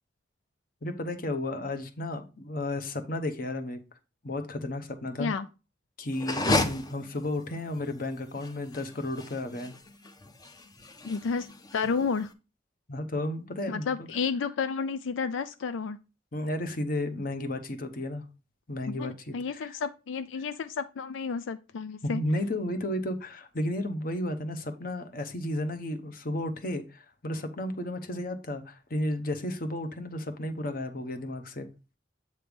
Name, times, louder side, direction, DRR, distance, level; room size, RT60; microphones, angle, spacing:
voice 1, 0.8-3.8 4.2-5.3 6.0-9.8 12.9-14.1 16.3-18.2 18.7-19.8 22.0-31.7, left 1 dB, 50° left, 0.9 m, -33 dB
sound 1, 6.1-12.3, left 2 dB, 20° left, 0.5 m, -33 dB
voice 2, 11.0-11.5 11.7-12.3 13.7-16.0 18.8-22.2, left 5 dB, 90° left, 0.4 m, -31 dB
8.1 x 3.2 x 5.1 m
head